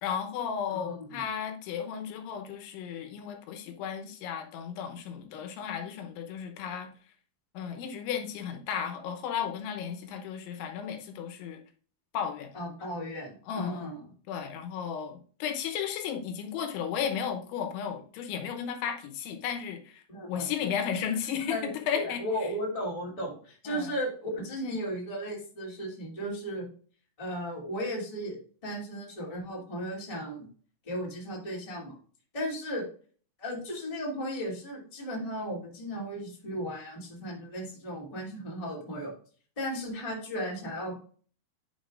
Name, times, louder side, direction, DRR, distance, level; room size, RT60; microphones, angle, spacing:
voice 1, 0.0-6.9 7.5-11.6 12.1-12.5 13.5-13.9 14.3-20.0 20.3-22.5 23.7-23.9, left 8 dB, 80° left, 5 dB, 3.4 m, -34 dB
voice 2, 12.5-14.0 20.1-20.5 21.4-26.7 27.2-28.4 28.6-30.5 30.8-31.9 32.3-32.8 33.4-39.1 39.5-41.0, equal, 10° left, -3 dB, 1.6 m, -35 dB
10.5 x 5.8 x 2.5 m, 0.43 s
omnidirectional pair, 5.3 m